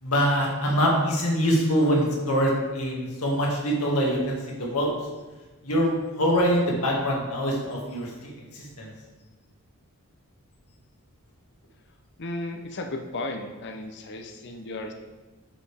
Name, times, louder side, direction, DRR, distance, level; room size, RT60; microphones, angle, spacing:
voice 1, 0.0-4.9 5.6-8.1 8.5-8.9, equal, 75° left, -3 dB, 2.0 m, -24 dB
voice 2, 12.2-14.9, left 2 dB, 50° left, 4 dB, 0.7 m, -34 dB
9.9 x 5.1 x 3.4 m, 1.2 s
head